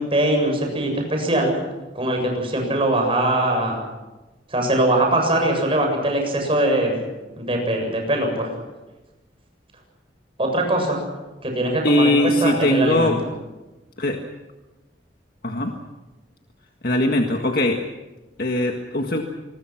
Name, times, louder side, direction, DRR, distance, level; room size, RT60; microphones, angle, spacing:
voice 1, 0.0-1.5 1.9-3.8 4.5-7.0 7.4-8.5 10.4-11.0 11.4-13.1, right 1 dB, 30° right, 2 dB, 7.5 m, -21 dB
voice 2, 11.8-13.2 14.0-14.2 15.4-15.7 16.8-17.8 18.4-19.2, left 1 dB, 55° left, 3 dB, 1.8 m, -20 dB
27.0 x 21.5 x 6.1 m, 1.1 s
head